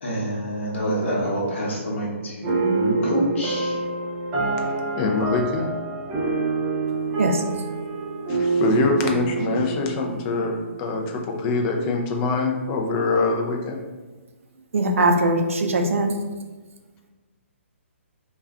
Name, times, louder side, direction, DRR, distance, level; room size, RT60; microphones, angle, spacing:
voice 1, 0.0-3.8, equal, 60° left, -4 dB, 0.9 m, -26 dB
sound 1, 2.4-11.0, right 4 dB, 20° right, 0.6 m, -26 dB
voice 2, 5.0-5.7 8.3-13.8, left 3 dB, 25° left, 2 dB, 0.3 m, -24 dB
voice 3, 14.7-16.1, right 2 dB, 80° right, 4 dB, 0.4 m, -20 dB
2.3 x 2.2 x 3.5 m, 1.3 s
hypercardioid pair, 150°, 7 cm